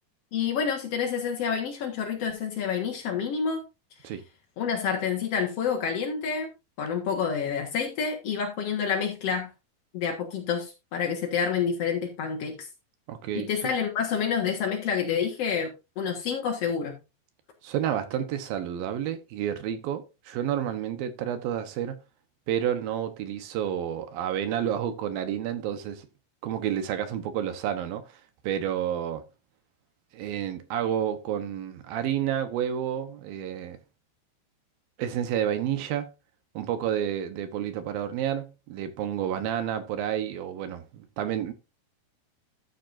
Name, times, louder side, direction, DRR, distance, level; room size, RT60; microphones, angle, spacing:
voice 1, 0.3-3.6 4.0-4.1 4.6-6.5 6.8-9.5 9.9-12.7 13.3-15.7 15.9-17.0, left 6 dB, 70° left, 1.4 m, -28 dB
voice 2, 13.1-13.5 17.6-22.0 22.5-26.1 26.4-28.2 28.4-29.3 30.1-33.8 35.0-36.1 36.5-41.5, right 10 dB, 70° right, 2.5 m, -30 dB
14.0 x 7.3 x 2.6 m
omnidirectional pair, 5.1 m